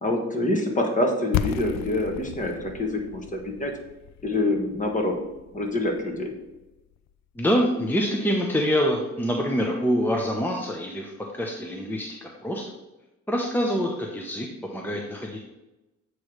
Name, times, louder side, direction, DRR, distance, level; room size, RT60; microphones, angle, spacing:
voice 1, 0.0-3.7 4.2-5.2 5.5-6.3, left 1 dB, 25° left, 2 dB, 1.4 m, -26 dB
sound 1, 1.3-7.1, left 11 dB, 65° left, 0.5 m, -34 dB
voice 2, 7.4-12.6 13.3-15.4, equal, 5° left, -1 dB, 0.8 m, -26 dB
8.3 x 3.2 x 4.9 m, 1.0 s
cardioid pair, 90°, 30 cm